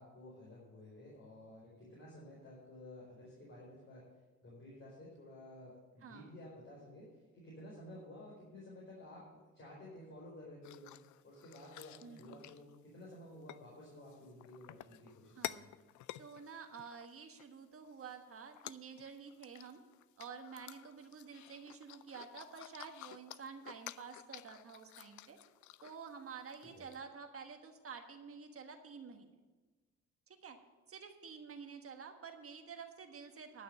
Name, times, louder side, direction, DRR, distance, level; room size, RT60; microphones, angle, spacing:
voice 1, 0.0-4.1 4.4-10.9 11.2-15.7 26.7-26.8, left 1 dB, 40° left, -4 dB, 4.4 m, -53 dB
voice 2, 6.0-6.3 12.0-12.4 15.4-15.7 16.2-19.8 20.2-25.4 25.8-29.4 30.3-30.6 30.9-33.6, right 6 dB, 50° right, 5 dB, 1.4 m, -50 dB
sound 1, 10.6-13.1 13.5-13.6 14.0-17.5 17.9-18.2 18.5-26.2 26.5-26.6 26.9-27.0, left 14 dB, 75° left, 0.5 m, -51 dB
11.5 x 6.6 x 7.7 m, 1.3 s
cardioid pair, 90°, 30 cm